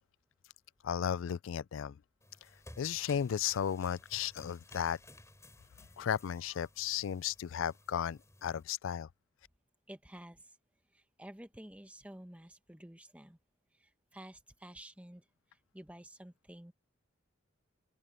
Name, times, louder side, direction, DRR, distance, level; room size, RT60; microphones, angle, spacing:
voice 1, 0.8-2.0 2.8-5.0 6.0-9.1, left 8 dB, 75° left, 0.4 m, -34 dB
sound 1, 2.2-8.6, left 1 dB, 15° left, 5.7 m, -57 dB
voice 2, 9.9-10.5 10.9-13.4 13.7-15.3 15.5-16.7, right 1 dB, 5° right, 1.3 m, -51 dB
head